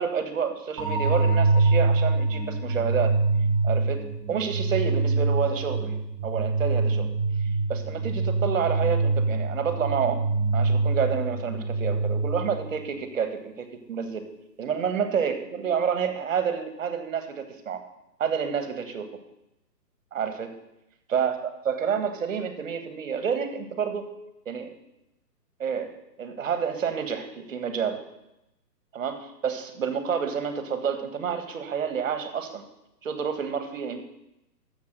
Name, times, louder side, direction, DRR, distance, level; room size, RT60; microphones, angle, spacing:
voice 1, 0.0-3.1 3.6-5.9 6.2-7.1 7.7-10.2 10.5-14.3 14.6-17.8 18.2-19.1 20.1-20.5 21.1-21.4 21.6-24.0 24.4-24.7 25.6-25.9 26.2-28.0 28.9-32.6 33.0-34.0, right 7 dB, 50° right, 7 dB, 1.6 m, -29 dB
sound 1, 0.8-12.7, right 3 dB, 10° right, 0.9 m, -25 dB
10.5 x 7.2 x 6.7 m, 0.87 s
hypercardioid pair, 150°, 50 cm